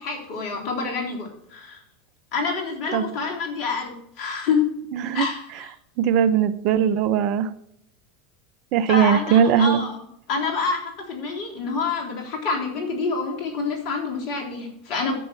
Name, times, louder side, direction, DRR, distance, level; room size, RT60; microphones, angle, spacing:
voice 1, 0.0-1.8 2.3-4.6 5.1-5.7 8.9-15.1, left 4 dB, 55° left, 1 dB, 3.6 m, -27 dB
voice 2, 4.9-5.3 6.0-7.5 8.7-9.8, right 8 dB, 50° right, 14 dB, 0.7 m, -19 dB
10.0 x 6.7 x 5.9 m, 0.72 s
hypercardioid pair, 85°, 0 cm